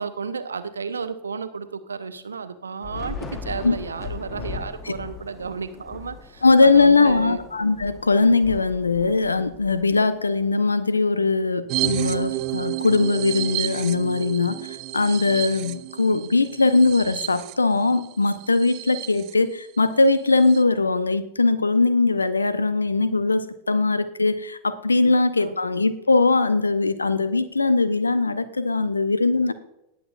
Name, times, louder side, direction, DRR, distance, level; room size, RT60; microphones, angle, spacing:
voice 1, 0.0-7.4 25.0-25.1 25.4-25.6, right 5 dB, 75° right, 11 dB, 0.7 m, -33 dB
Thunder / Rain, 2.8-10.4, left 4 dB, 20° left, 1.3 m, -38 dB
voice 2, 6.4-29.5, left 3 dB, 80° left, 15 dB, 0.6 m, -20 dB
sound 1, 11.7-19.3 19.8-19.9 20.1-20.6, right 17 dB, 40° right, 0.5 m, -31 dB
19.5 x 8.3 x 2.5 m, 0.89 s
figure-of-eight pair, 90°, 0 cm